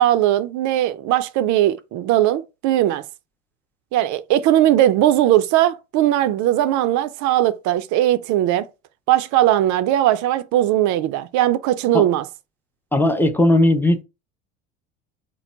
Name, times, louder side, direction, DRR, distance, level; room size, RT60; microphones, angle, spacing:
voice 1, 0.0-3.0 3.9-8.7 9.1-12.3, right 13 dB, 50° right, 0.6 m, -19 dB
voice 2, 12.9-14.0, left 1 dB, 5° left, 0.7 m, -17 dB
4.5 x 2.1 x 4.3 m
hypercardioid pair, 75°, 38 cm